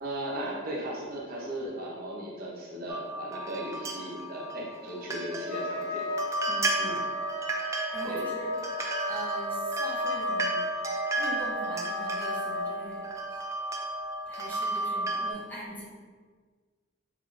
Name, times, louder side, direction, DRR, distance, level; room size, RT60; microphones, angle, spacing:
voice 1, 0.0-6.1 6.8-7.0 8.0-8.2, right 1 dB, 45° right, -4 dB, 0.8 m, -37 dB
sound 1, 2.9-15.3, right 1 dB, 15° right, 0.3 m, -33 dB
Trumpet, 5.5-12.8, left 2 dB, 90° left, 0.5 m, -36 dB
voice 2, 6.5-6.9 7.9-8.6 9.0-10.7 11.2-13.4 14.3-15.9, right 1 dB, 10° left, -5 dB, 0.8 m, -42 dB
5.8 x 2.7 x 2.5 m, 1.5 s
head